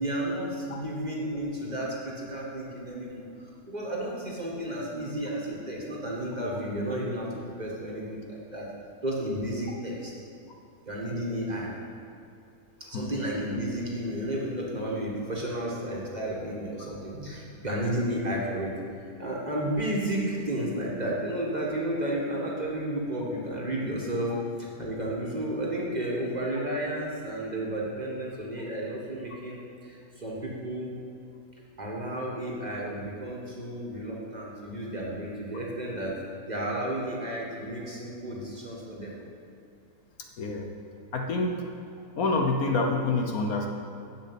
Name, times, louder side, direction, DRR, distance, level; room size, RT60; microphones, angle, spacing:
voice 1, 0.0-3.2 3.7-8.7 9.0-10.1 10.8-11.7 12.9-18.7 19.2-24.3 24.6-30.9 31.8-36.1 36.5-39.1, right 1 dB, 25° right, -4 dB, 1.7 m, -32 dB
voice 2, 40.4-40.7 41.1-41.7 42.2-43.7, left 3 dB, 65° left, 2 dB, 1.3 m, -27 dB
7.6 x 7.4 x 8.3 m, 2.6 s
omnidirectional pair, 1.7 m